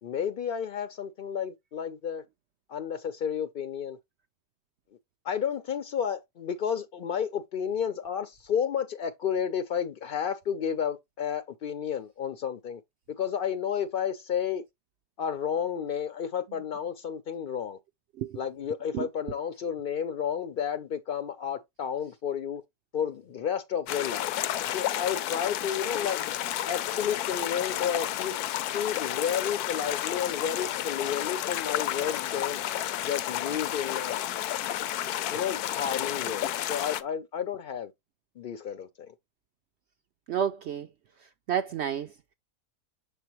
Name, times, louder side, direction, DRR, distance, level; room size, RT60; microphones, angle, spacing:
voice 1, 0.0-2.2 2.7-4.0 5.2-12.8 13.2-14.6 15.2-17.8 18.4-22.6 22.9-24.3 24.7-26.2 26.6-32.6 33.0-34.2 35.3-37.9 38.4-39.1, left 8 dB, 60° left, 0.5 m, -31 dB
sound 1, 23.9-37.0, left 12 dB, 80° left, 1.1 m, -31 dB
voice 2, 40.3-40.9 41.2-42.3, right 9 dB, 70° right, 0.6 m, -31 dB
6.8 x 5.0 x 3.0 m
omnidirectional pair, 1.6 m